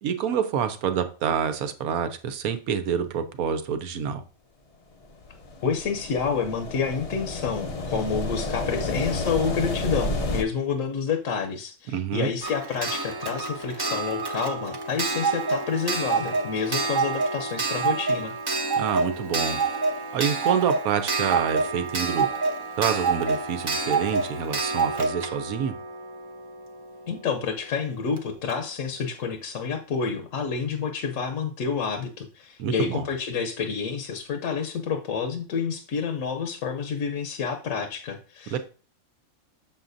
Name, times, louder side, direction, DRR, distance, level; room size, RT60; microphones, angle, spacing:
voice 1, 0.0-4.2 11.9-12.3 18.7-19.6 20.1-22.3 22.8-25.7 32.6-33.0 38.5-38.6, right 7 dB, 80° right, 9 dB, 1.2 m, -27 dB
sound 1, 5.2-10.4, left 2 dB, 40° left, 0.5 m, -30 dB
voice 2, 5.6-18.3 27.1-38.6, left 6 dB, 70° left, 6 dB, 1.1 m, -29 dB
Clock, 12.4-27.0 28.2-28.3 28.5-28.6, right 4 dB, 35° right, 0.4 m, -27 dB
7.1 x 6.4 x 2.6 m, 0.37 s
omnidirectional pair, 1.5 m